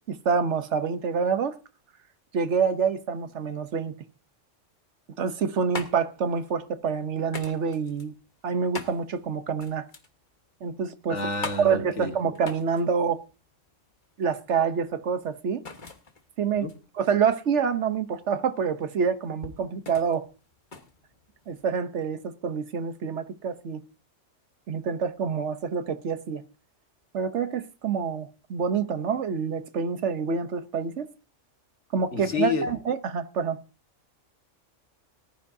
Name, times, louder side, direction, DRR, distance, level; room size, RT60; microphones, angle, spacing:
voice 1, 0.1-1.6 2.3-3.9 5.2-8.1 8.4-9.9 10.6-11.2 11.6-13.2 14.2-15.6 16.4-16.7 16.9-20.3 21.5-23.8 24.7-26.4 27.1-31.1 31.9-33.6, right 6 dB, 65° right, 1.2 m, -27 dB
sound 1, 5.4-21.8, left 3 dB, 40° left, 1.5 m, -43 dB
voice 2, 11.1-12.1 16.6-16.7 32.1-32.7, left 4 dB, 65° left, 1.8 m, -29 dB
19.0 x 12.5 x 2.7 m
omnidirectional pair, 1.3 m